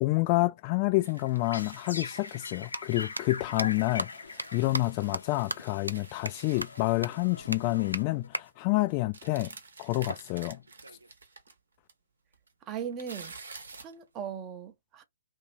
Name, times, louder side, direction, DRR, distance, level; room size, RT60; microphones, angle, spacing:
voice 1, 0.0-9.5 9.8-10.6, left 21 dB, 30° left, 0.3 m, -28 dB
sound 1, 1.0-3.4 3.7-7.4 7.6-7.9 8.2-8.5 9.1-11.5 11.9-12.0 12.3-14.0, right 4 dB, 70° right, 1.0 m, -50 dB
sound 2, 1.2-8.5, left 4 dB, 70° left, 0.7 m, -43 dB
sound 3, 2.7-2.8 3.2-3.3 3.6-3.7 4.0-4.1 4.4-4.5 4.7-4.8 5.1-5.2 5.5-5.6 5.9-6.0 6.3-6.4 6.6-6.7 7.0-7.1 7.5-7.6 7.9-8.0 8.3-8.4 10.1-11.1, right 1 dB, 90° right, 0.4 m, -34 dB
voice 2, 12.7-13.4 13.8-15.0, right 8 dB, 25° right, 0.7 m, -38 dB
2.8 x 2.7 x 3.1 m
figure-of-eight pair, 125°, 0 cm